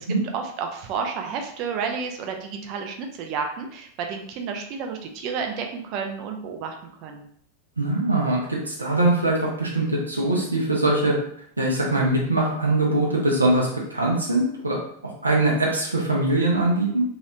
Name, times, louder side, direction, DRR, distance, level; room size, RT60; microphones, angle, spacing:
voice 1, 0.3-7.3, right 5 dB, 40° right, 3 dB, 0.5 m, -31 dB
voice 2, 7.8-11.1 11.6-14.8 15.2-17.0, right 2 dB, 80° right, -3 dB, 0.7 m, -22 dB
3.0 x 3.0 x 2.4 m, 0.65 s
figure-of-eight pair, 90°, 0 cm